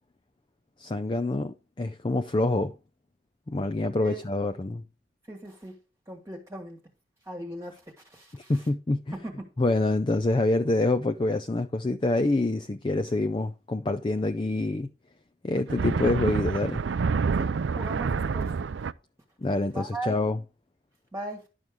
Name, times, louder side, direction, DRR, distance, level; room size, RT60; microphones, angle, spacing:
voice 1, 0.8-2.7 3.5-4.8 8.5-9.1 9.6-14.9 15.4-16.8 19.4-20.4, left 2 dB, 25° left, 0.4 m, -26 dB
voice 2, 5.3-5.8 6.1-6.8 7.2-8.7 9.1-9.5 17.4-18.5 19.7-20.1 21.1-21.4, right 1 dB, 15° right, 1.4 m, -38 dB
sound 1, 15.6-18.9, right 5 dB, 90° right, 0.4 m, -27 dB
10.5 x 6.4 x 3.6 m
head